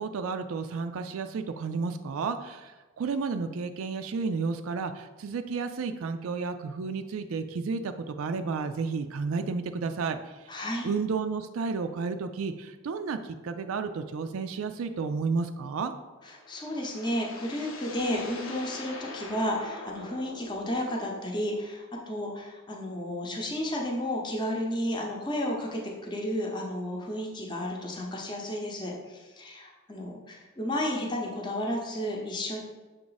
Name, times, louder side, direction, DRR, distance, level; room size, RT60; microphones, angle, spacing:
voice 1, 0.0-10.4 10.8-15.9, right 4 dB, 80° right, 8 dB, 0.4 m, -32 dB
voice 2, 10.5-10.9 16.2-32.6, left 1 dB, 20° left, -1 dB, 0.7 m, -32 dB
sound 1, 16.1-21.3, left 2 dB, 75° left, 0.8 m, -43 dB
6.7 x 3.6 x 4.0 m, 1.2 s
head